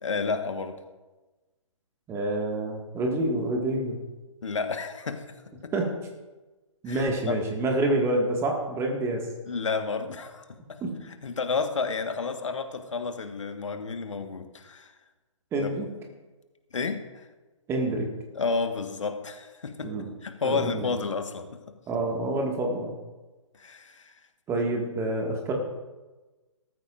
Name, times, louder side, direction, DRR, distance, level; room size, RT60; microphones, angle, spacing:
voice 1, 0.0-0.8 4.4-5.2 5.6-5.7 6.9-7.4 9.4-10.8 11.0-14.9 15.5-15.7 16.7-17.3 18.3-19.9 20.2-21.5 23.6-24.2, left 4 dB, 65° left, 6 dB, 1.5 m, -31 dB
voice 2, 2.1-4.0 5.7-5.9 6.8-9.2 10.8-10.9 15.5-15.9 17.7-18.1 19.8-20.1 20.4-21.0 21.9-22.9 24.5-25.5, right 2 dB, 15° right, 1 dB, 1.9 m, -27 dB
19.0 x 14.0 x 2.6 m, 1.2 s
figure-of-eight pair, 130°, 17 cm